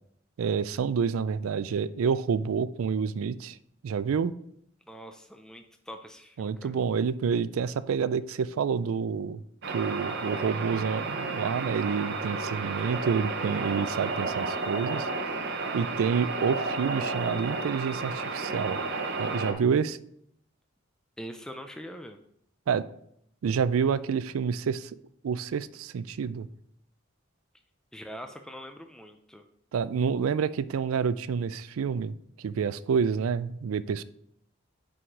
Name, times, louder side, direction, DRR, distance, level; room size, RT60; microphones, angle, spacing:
voice 1, 0.4-3.6 3.8-4.3 6.4-9.4 9.7-15.1 15.7-18.8 19.2-20.0 22.7-22.8 23.4-24.9 25.2-26.5 29.7-34.0, right 6 dB, 85° right, 16 dB, 0.4 m, -28 dB
voice 2, 4.9-6.8 21.2-22.2 27.9-29.4, equal, 5° left, 5 dB, 0.3 m, -43 dB
sound 1, 9.6-19.5, right 3 dB, 55° right, 0.9 m, -32 dB
6.2 x 4.8 x 4.6 m, 0.71 s
head